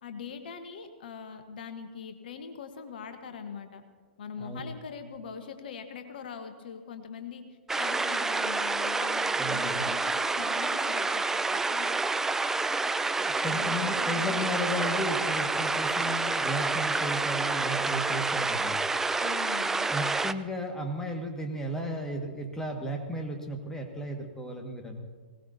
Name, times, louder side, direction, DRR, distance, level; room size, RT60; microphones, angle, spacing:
voice 1, 0.0-3.8 4.2-7.4 7.8-11.9 13.5-14.4 19.2-19.9, left 6 dB, 60° left, 7 dB, 1.3 m, -42 dB
sound 1, 7.7-20.3, right 3 dB, 5° right, 0.4 m, -28 dB
voice 2, 9.4-9.8 13.2-18.8 19.9-25.1, equal, 10° left, 3 dB, 1.7 m, -34 dB
20.0 x 18.0 x 2.8 m, 1.5 s
figure-of-eight pair, 110°, 6 cm